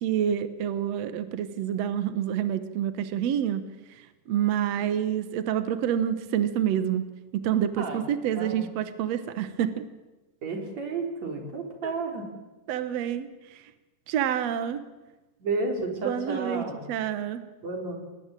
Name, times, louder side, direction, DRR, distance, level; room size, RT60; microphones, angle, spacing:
voice 1, 0.0-3.7 4.3-7.1 7.3-9.8 11.8-11.9 12.7-13.3 14.1-14.8 16.0-17.4, right 10 dB, 75° right, 11 dB, 1.5 m, -27 dB
voice 2, 7.8-8.7 10.4-12.2 15.4-16.8 17.6-18.0, right 3 dB, 40° right, 3 dB, 5.0 m, -32 dB
26.5 x 19.5 x 9.0 m, 1.1 s
omnidirectional pair, 4.7 m